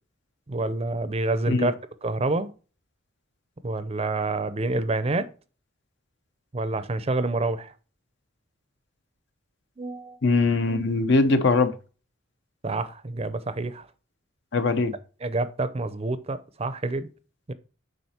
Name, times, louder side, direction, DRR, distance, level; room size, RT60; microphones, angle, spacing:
voice 1, 0.5-1.8 2.0-2.5 3.6-5.3 6.5-7.7 9.8-10.2 12.6-13.9 15.2-17.1 17.5-17.6, right 2 dB, 30° right, 0.6 m, -27 dB
voice 2, 10.2-11.7 14.5-14.9, left 3 dB, 60° left, 0.8 m, -21 dB
7.9 x 5.1 x 4.3 m
head